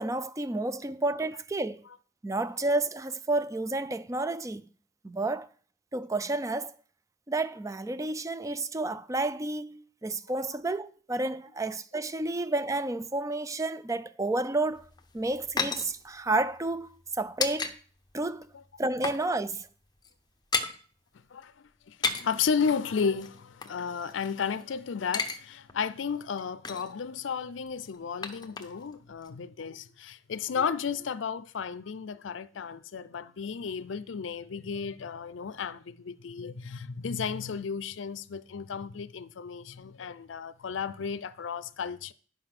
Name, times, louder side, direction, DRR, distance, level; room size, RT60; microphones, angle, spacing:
voice 1, 0.0-1.8 2.2-4.7 5.0-5.5 5.9-6.7 7.3-14.9 15.1-16.9 17.2-17.8 18.1-18.5 18.8-19.7, right 2 dB, 15° right, 0.4 m, -30 dB
sound 1, 14.8-17.7 18.0-18.2 18.6-19.3 19.5-19.7 19.9-20.8 21.8-22.4 23.2-24.6 24.9-25.4 25.7-25.8 26.2-27.0 27.7-29.0 29.2-29.3, left 4 dB, 20° left, 0.8 m, -34 dB
voice 2, 21.9-42.1, left 6 dB, 80° left, 0.5 m, -33 dB
11.0 x 5.6 x 5.9 m
head